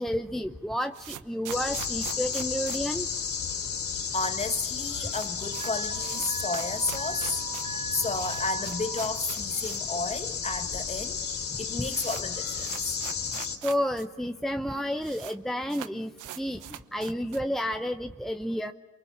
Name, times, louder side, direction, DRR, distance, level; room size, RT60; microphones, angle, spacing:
voice 1, 0.0-3.1 13.6-16.1 16.4-18.7, equal, ahead, 0.8 m, -31 dB
sound 1, 0.5-3.8 4.0-4.1 4.4-4.5 4.8-10.0 10.3-10.4 11.1-11.2 11.4-14.1 14.3-14.4 14.6-15.4 15.7-17.6, right 13 dB, 85° right, 1.0 m, -43 dB
sound 2, 1.5-13.6, left 6 dB, 65° left, 3.6 m, -33 dB
voice 2, 4.1-11.2 11.6-13.0, left 3 dB, 20° left, 1.6 m, -32 dB
Alarm, 5.5-9.0, right 4 dB, 25° right, 2.2 m, -40 dB
28.5 x 24.0 x 7.2 m
cardioid pair, 90°, 30 cm